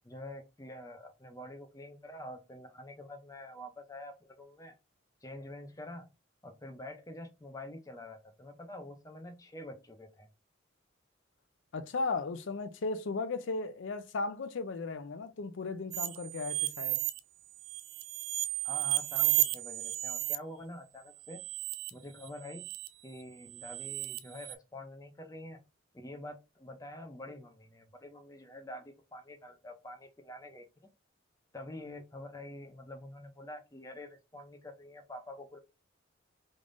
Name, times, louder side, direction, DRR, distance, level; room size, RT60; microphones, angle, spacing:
voice 1, 0.0-4.7 5.2-6.1 6.4-10.3 18.6-21.4 21.9-22.7 23.0-25.6 25.9-30.7 31.5-35.6, left 1 dB, 15° left, 0.5 m, -47 dB
voice 2, 11.7-17.0, left 3 dB, 70° left, 0.5 m, -36 dB
sound 1, 15.9-17.2 17.6-20.4 21.3-21.9 22.2-22.9 23.5-24.5, right 16 dB, 90° right, 0.4 m, -33 dB
3.5 x 3.2 x 2.5 m
head